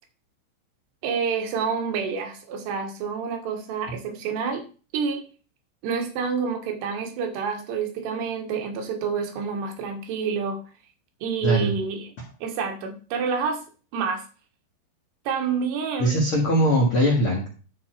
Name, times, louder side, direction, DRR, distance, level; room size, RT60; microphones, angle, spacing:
voice 1, 1.0-4.7 4.9-5.3 5.8-10.6 11.2-12.1 12.4-13.6 13.9-14.2 15.3-16.2, right 5 dB, 70° right, 5 dB, 3.2 m, -28 dB
voice 2, 16.0-17.5, equal, 80° left, -2 dB, 1.2 m, -21 dB
12.5 x 4.6 x 4.5 m, 0.36 s
omnidirectional pair, 5.5 m